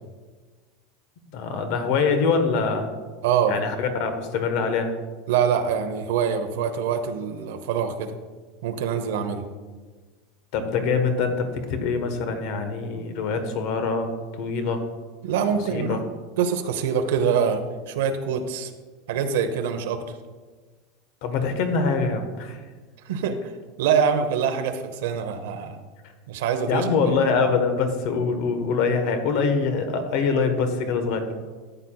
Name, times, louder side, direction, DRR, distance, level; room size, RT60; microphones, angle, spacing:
voice 1, 1.3-2.9 3.5-4.9 10.5-14.8 15.7-16.0 21.2-22.6 26.7-31.3, left 4 dB, 50° left, 7 dB, 1.1 m, -24 dB
voice 2, 3.2-3.5 5.3-8.1 8.6-9.4 15.2-16.0 16.4-17.6 17.9-18.7 19.1-20.2 23.0-23.5 23.8-25.8 26.3-27.1, right 7 dB, 80° right, 6 dB, 0.8 m, -24 dB
13.5 x 8.9 x 2.3 m, 1.4 s
supercardioid pair, 170°, 0 cm